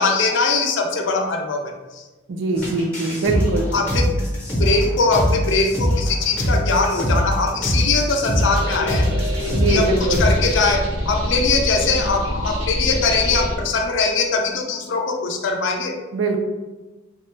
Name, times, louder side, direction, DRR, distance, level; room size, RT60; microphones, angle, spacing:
voice 1, 0.0-2.0 3.7-4.2 4.5-9.1 9.7-16.0, left 4 dB, 60° left, 3 dB, 0.4 m, -21 dB
voice 2, 2.3-3.7 9.5-10.3 16.1-16.4, right 2 dB, 65° right, 5 dB, 0.4 m, -22 dB
sound 1, 2.6-10.5, equal, 5° left, 0.7 m, -22 dB
sound 2, 8.4-13.6, equal, 85° right, 0.9 m, -26 dB
3.4 x 2.1 x 3.1 m, 1.2 s
head